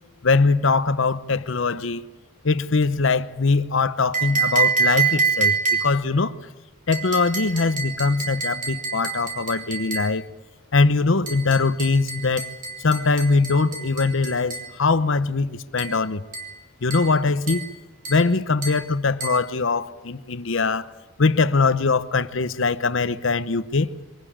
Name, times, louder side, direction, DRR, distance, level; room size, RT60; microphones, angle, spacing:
voice 1, 0.2-2.0 2.4-6.3 6.9-10.2 10.7-12.5 12.8-16.2 16.8-17.6 18.1-20.9 21.2-23.9, left 4 dB, 70° left, 0.8 m, -22 dB
sound 1, 4.1-6.1 6.9-10.2 11.3-14.7 15.8-16.0 16.3-16.6 16.9-17.2 17.5-17.7 18.0-18.3 18.6-18.9 19.2-19.5, right 5 dB, 40° right, 3.6 m, -26 dB
23.5 x 18.0 x 8.7 m
head